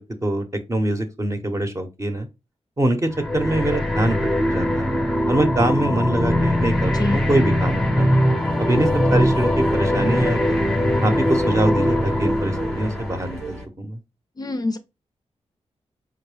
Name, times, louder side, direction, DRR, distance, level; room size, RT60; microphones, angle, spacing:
voice 1, 0.2-2.3 2.8-4.9 5.3-8.1 8.6-10.6 11.0-14.0, right 1 dB, 25° right, 0.8 m, -24 dB
sound 1, 3.1-13.7, equal, 5° left, 0.7 m, -21 dB
sound 2, 8.4-13.7, right 1 dB, 80° right, 0.6 m, -39 dB
voice 2, 14.4-14.8, left 2 dB, 35° left, 0.4 m, -25 dB
4.6 x 2.2 x 3.3 m
wide cardioid pair, 90°, 11 cm